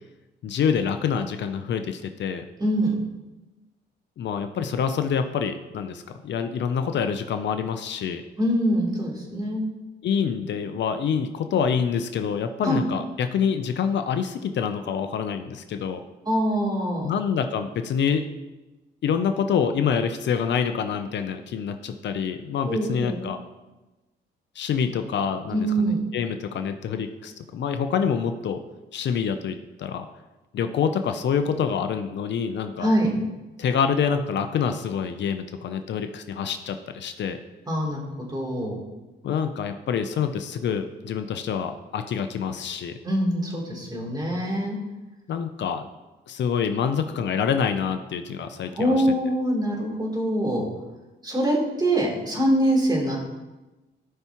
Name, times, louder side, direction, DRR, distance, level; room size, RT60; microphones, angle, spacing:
voice 1, 0.4-2.4 4.2-8.2 10.0-16.0 17.0-18.2 19.0-23.4 24.6-28.6 28.9-30.1 30.5-32.9 33.6-37.4 39.2-43.0 45.3-45.9 46.3-49.1, left 7 dB, 65° left, 7 dB, 0.7 m, -26 dB
voice 2, 2.6-2.9 8.4-9.6 12.6-12.8 16.2-17.1 22.7-23.2 25.5-26.0 32.8-33.1 37.7-38.8 43.0-44.8 48.7-50.6 51.2-53.2, right 1 dB, 20° right, -2 dB, 3.4 m, -24 dB
16.0 x 5.7 x 3.1 m, 1.1 s
cardioid pair, 90°, 20 cm